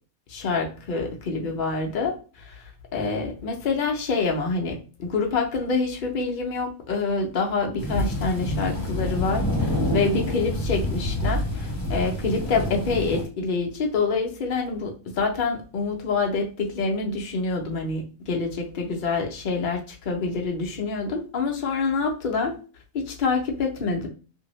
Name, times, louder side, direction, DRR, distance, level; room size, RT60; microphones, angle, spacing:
voice 1, 0.3-2.2 2.5-2.6 2.9-22.6 22.9-24.1, left 4 dB, 65° left, 1 dB, 0.5 m, -26 dB
sound 1, 7.8-13.2, left 1 dB, 35° left, 1.1 m, -27 dB
2.7 x 2.5 x 3.0 m, 0.37 s
omnidirectional pair, 1.5 m